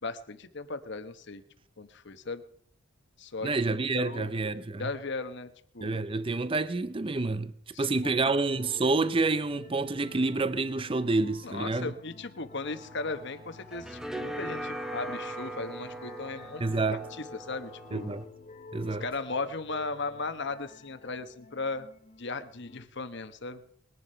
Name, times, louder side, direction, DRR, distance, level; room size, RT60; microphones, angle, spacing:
voice 1, 0.0-1.4 1.8-2.4 3.2-4.3 4.8-6.0 7.7-8.3 11.4-16.8 17.2-18.1 19.0-21.9 22.2-23.6, left 3 dB, 55° left, 1.1 m, -37 dB
voice 2, 3.4-4.9 5.8-7.5 7.8-11.9 16.6-17.0 17.9-18.3 18.7-19.1, right 3 dB, 25° right, 0.5 m, -28 dB
sound 1, 8.2-22.9, left 3 dB, 35° left, 1.1 m, -51 dB
sound 2, 12.6-18.2, right 1 dB, ahead, 1.0 m, -40 dB
21.0 x 11.0 x 5.6 m
head